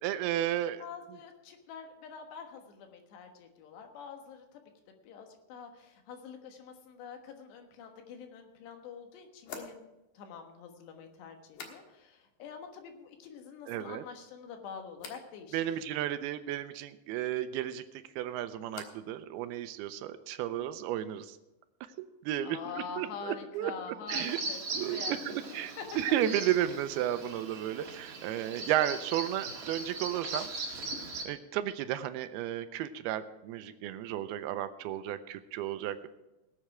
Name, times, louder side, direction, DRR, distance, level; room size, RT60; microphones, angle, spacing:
voice 1, 0.0-0.8 13.7-14.0 15.5-17.8 18.2-21.4 22.3-22.6 23.0-23.7 24.1-24.4 24.7-25.2 25.5-30.5 31.2-36.1, right 12 dB, 80° right, 11 dB, 2.4 m, -33 dB
voice 2, 0.8-4.6 5.0-9.8 10.2-15.8 22.4-24.6 24.9-25.8 35.8-36.1, left 6 dB, 85° left, 4 dB, 3.6 m, -46 dB
sound 1, 8.2-8.3 9.4-12.3 12.5-13.2 13.5-14.1 15.0-15.3 17.7-19.2 19.4-20.1, left 5 dB, 60° left, 2.3 m, -51 dB
Bird vocalization bird call bird song, 24.1-31.2, right 3 dB, 50° right, 1.6 m, -39 dB
19.0 x 7.5 x 4.8 m, 0.96 s
omnidirectional pair, 4.8 m